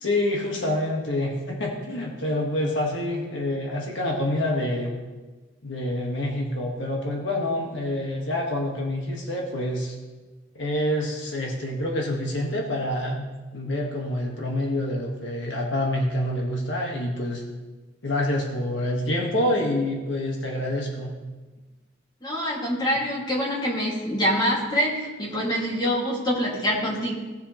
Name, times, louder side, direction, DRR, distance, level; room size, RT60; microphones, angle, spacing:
voice 1, 0.0-4.9 5.6-9.9 10.5-17.4 18.0-21.1, left 1 dB, 75° left, 0 dB, 1.6 m, -27 dB
voice 2, 22.2-27.1, equal, 25° left, -4 dB, 2.3 m, -25 dB
17.0 x 7.2 x 3.1 m, 1.3 s
head